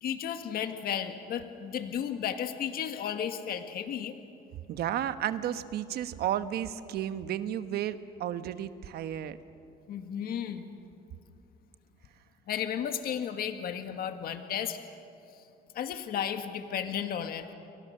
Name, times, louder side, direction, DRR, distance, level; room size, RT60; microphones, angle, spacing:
voice 1, 0.0-4.2 9.9-10.6 12.5-14.8 15.7-17.5, left 9 dB, 60° left, 7 dB, 1.7 m, -33 dB
voice 2, 4.7-9.4, right 11 dB, 70° right, 11 dB, 1.2 m, -33 dB
29.0 x 24.0 x 6.6 m, 2.6 s
cardioid pair, 110°, 17 cm